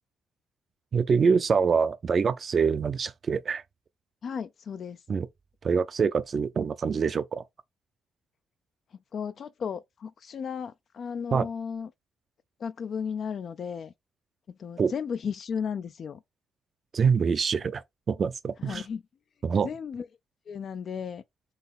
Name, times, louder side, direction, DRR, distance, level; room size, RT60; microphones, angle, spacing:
voice 1, 0.9-3.6 5.1-5.3 5.6-7.4 11.3-11.5 14.8-14.9 16.9-18.8 19.4-19.7, right 6 dB, 45° right, 0.5 m, -25 dB
voice 2, 4.2-5.0 9.1-11.9 12.6-13.9 14.5-16.2 18.6-19.0 19.6-20.1 20.5-21.2, left 6 dB, 55° left, 0.4 m, -34 dB
4.0 x 2.8 x 4.1 m
cardioid pair, 90°, 0 cm